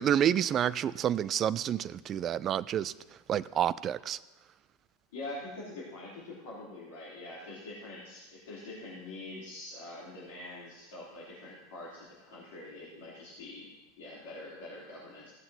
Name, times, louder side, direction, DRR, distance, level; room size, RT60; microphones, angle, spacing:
voice 1, 0.0-2.9 3.3-4.2, right 10 dB, 35° right, 0.3 m, -29 dB
voice 2, 5.1-15.3, left 2 dB, 65° left, 3.0 m, -44 dB
16.0 x 7.8 x 2.7 m
figure-of-eight pair, 85°, 0 cm